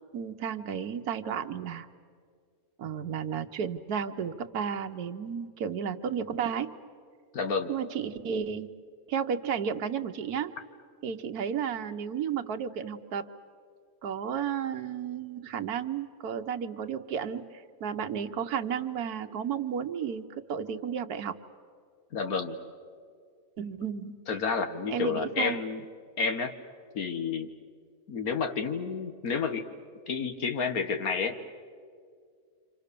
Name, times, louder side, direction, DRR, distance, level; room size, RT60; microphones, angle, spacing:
voice 1, 0.1-1.9 2.8-6.7 7.7-8.7 9.1-10.5 11.0-13.3 14.0-21.4 23.6-24.4 24.9-25.6, right 7 dB, 85° right, 7 dB, 1.4 m, -33 dB
voice 2, 7.3-7.7 22.1-22.6 24.3-25.8 26.2-26.5 27.0-27.5 28.1-29.6 30.1-31.4, left 5 dB, 75° left, 7 dB, 1.7 m, -30 dB
28.5 x 26.5 x 6.8 m, 2.1 s
omnidirectional pair, 1.6 m